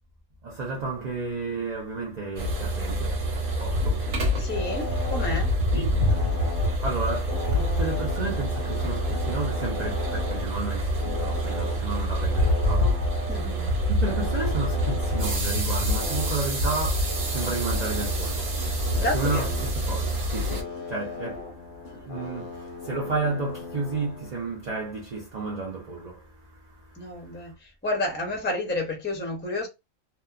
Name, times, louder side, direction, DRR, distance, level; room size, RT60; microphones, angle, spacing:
voice 1, 0.4-4.5 5.7-6.0 6.4-13.4 13.9-27.5, right 3 dB, 45° right, 0.6 m, -33 dB
sound 1, 2.4-20.6, equal, 80° right, 1.3 m, -26 dB
voice 2, 4.4-5.5 13.3-13.7 18.9-19.6 26.9-29.7, left 2 dB, 10° left, 0.5 m, -30 dB
sound 2, 4.5-5.5 5.8-10.5 10.8-11.8 12.2-15.4 15.9-16.4 16.9-24.3, left 4 dB, 50° left, 0.8 m, -38 dB
2.8 x 2.1 x 2.3 m
omnidirectional pair, 1.4 m